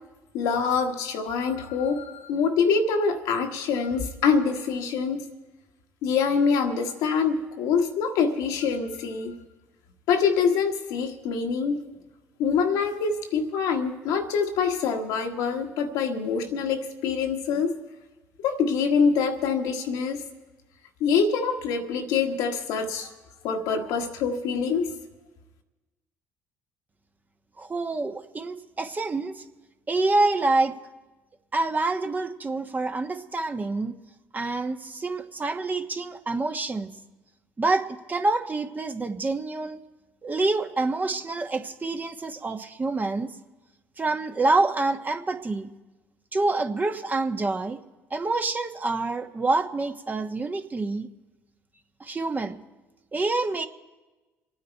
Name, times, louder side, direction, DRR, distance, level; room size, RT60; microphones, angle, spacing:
voice 1, 0.3-5.2 6.0-9.3 10.1-11.8 12.4-17.7 18.4-20.2 21.0-23.1 23.4-24.9, left 5 dB, 75° left, 4 dB, 1.5 m, -25 dB
voice 2, 27.6-29.4 29.9-30.7 31.5-33.9 34.3-36.9 37.6-39.8 40.2-43.3 44.0-45.7 46.3-47.8 48.1-51.1 52.0-52.6 53.1-53.7, right 3 dB, 25° right, 6 dB, 1.3 m, -27 dB
26.0 x 9.5 x 4.5 m, 1.2 s
hypercardioid pair, 60°, 6 cm